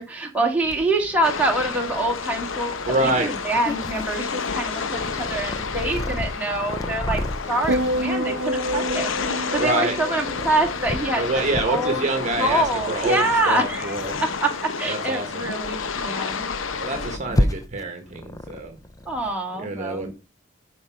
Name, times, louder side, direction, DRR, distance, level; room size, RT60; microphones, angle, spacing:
voice 1, 0.0-11.3 11.6-12.0 12.4-14.0 14.2-16.5 17.1-17.5 19.1-20.1, right 2 dB, 10° right, 0 dB, 2.0 m, -25 dB
Purr, 0.6-19.3, left 1 dB, 20° left, 0.5 m, -33 dB
sound 1, 1.2-17.2, left 5 dB, 75° left, 0.8 m, -30 dB
voice 2, 2.9-3.3 9.6-9.9 11.1-14.2 14.9-15.5 16.8-18.8 19.6-20.1, right 2 dB, 35° right, 5 dB, 1.4 m, -26 dB
sound 2, 7.7-12.1 12.4-12.8, equal, 75° right, 0.8 m, -29 dB
9.7 x 5.3 x 4.8 m, 0.30 s
head